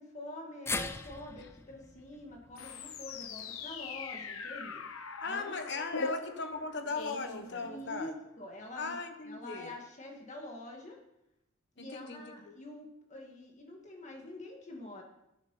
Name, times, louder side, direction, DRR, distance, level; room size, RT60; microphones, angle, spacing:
voice 1, 0.0-4.8 5.2-5.5 5.9-6.1 7.6-9.0 9.2-11.0 11.8-15.0, left 2 dB, 35° left, 1 dB, 2.1 m, -46 dB
sound 1, 0.7-4.9 5.3-5.4 6.5-6.6, left 3 dB, 10° left, 0.4 m, -42 dB
sound 2, 2.6-8.2, left 4 dB, 85° left, 0.9 m, -41 dB
voice 2, 5.2-8.1 8.8-9.7 11.8-12.6, left 3 dB, 55° left, 7 dB, 1.1 m, -38 dB
10.0 x 9.4 x 5.7 m, 0.89 s
head